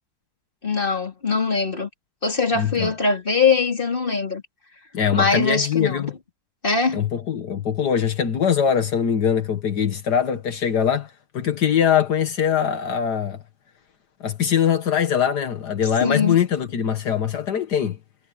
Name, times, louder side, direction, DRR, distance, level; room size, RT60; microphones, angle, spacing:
voice 1, 0.6-1.9 2.2-4.4 5.1-6.0 6.6-7.0 16.0-16.4, left 4 dB, 30° left, 3.4 m, -22 dB
voice 2, 2.5-2.9 4.9-6.1 6.9-13.4 14.2-18.0, left 8 dB, 75° left, 1.9 m, -22 dB
omnidirectional pair, 1.8 m